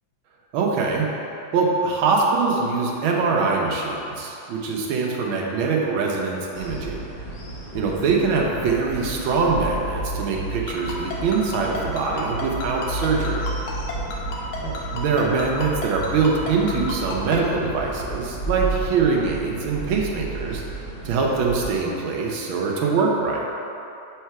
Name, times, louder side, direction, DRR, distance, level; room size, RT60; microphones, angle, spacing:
voice 1, 0.5-1.1 1.5-7.1 7.7-13.4 14.6-23.4, right 4 dB, 80° right, -1 dB, 1.5 m, -23 dB
sound 1, 6.5-21.7, right 2 dB, 45° left, 0.9 m, -32 dB
Ringtone, 10.7-17.4, left 4 dB, 85° left, 1.7 m, -32 dB
5.6 x 3.9 x 4.6 m, 2.8 s
omnidirectional pair, 2.2 m